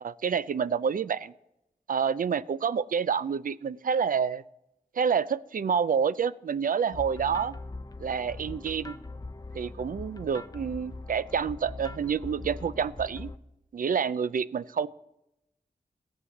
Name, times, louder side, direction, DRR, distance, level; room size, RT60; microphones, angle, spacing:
voice 1, 0.0-1.3 1.9-4.4 4.9-7.6 8.0-9.0 9.5-13.3 13.7-14.9, right 6 dB, 65° right, 17 dB, 0.5 m, -28 dB
sound 1, 6.9-13.4, left 2 dB, 25° left, 0.7 m, -41 dB
17.0 x 8.1 x 7.1 m, 0.88 s
wide cardioid pair, 110°, 15 cm